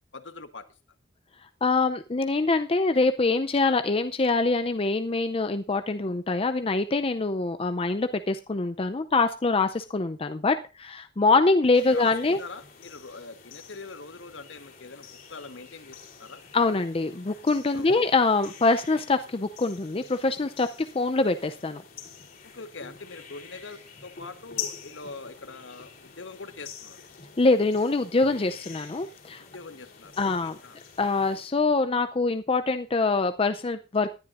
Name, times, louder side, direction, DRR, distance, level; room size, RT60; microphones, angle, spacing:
voice 1, 0.1-0.6 11.9-16.4 17.7-18.0 22.4-27.0 29.5-30.1 30.4-30.8, left 3 dB, 70° left, 9 dB, 1.3 m, -43 dB
voice 2, 1.6-12.4 16.5-20.7 20.9-21.8 27.4-29.4 30.2-30.6 31.0-34.1, left 3 dB, 30° left, 9 dB, 0.5 m, -24 dB
sound 1, 11.7-31.4, left 7 dB, 50° left, 3.0 m, -45 dB
19.0 x 10.5 x 2.6 m, 0.29 s
head